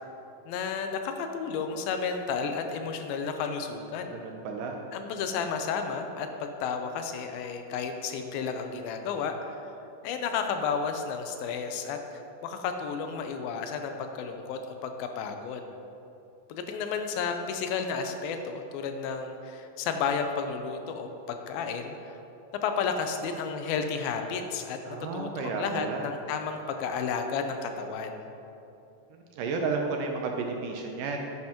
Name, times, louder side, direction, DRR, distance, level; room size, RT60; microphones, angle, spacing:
voice 1, 0.5-4.2 4.9-9.8 10.0-15.6 16.5-22.2 22.6-28.3, left 5 dB, 85° left, 6 dB, 2.4 m, -32 dB
voice 2, 4.1-4.7 24.9-26.0 29.3-31.3, right 4 dB, 75° right, 2 dB, 2.0 m, -32 dB
9.9 x 9.6 x 2.9 m, 2.9 s
omnidirectional pair, 4.2 m